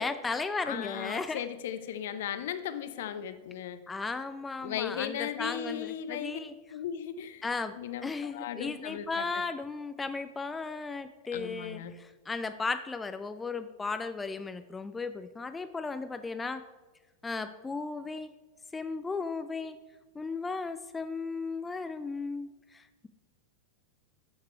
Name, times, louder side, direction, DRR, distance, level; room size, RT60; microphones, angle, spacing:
voice 1, 0.0-1.4 3.9-6.5 7.4-7.7 8.0-16.6 17.2-18.3 18.7-19.8 20.2-23.1, left 4 dB, 10° left, 10 dB, 0.4 m, -35 dB
voice 2, 0.6-3.8 4.6-6.4 6.7-7.4 7.8-9.2 11.3-12.0, left 10 dB, 55° left, 12 dB, 0.6 m, -37 dB
9.6 x 6.6 x 4.5 m, 1.2 s
figure-of-eight pair, 90°, 0 cm